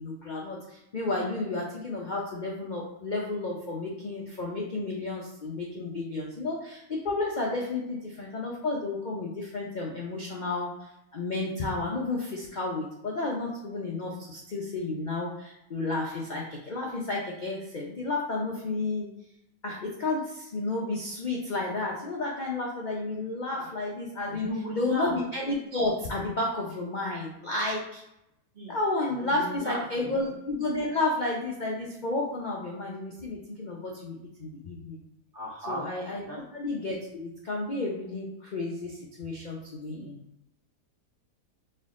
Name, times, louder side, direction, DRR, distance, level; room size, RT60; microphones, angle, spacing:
voice 1, 0.0-10.7 11.1-19.1 19.6-28.0 28.7-35.0 35.7-36.2 36.5-40.2, left 2 dB, 65° left, -3 dB, 0.4 m, -32 dB
voice 2, 24.3-25.1 28.5-28.8 29.2-30.1 35.3-35.8 36.3-36.4 40.0-40.1, equal, 45° right, -4 dB, 0.7 m, -36 dB
4.4 x 2.7 x 3.6 m, 0.86 s
omnidirectional pair, 1.8 m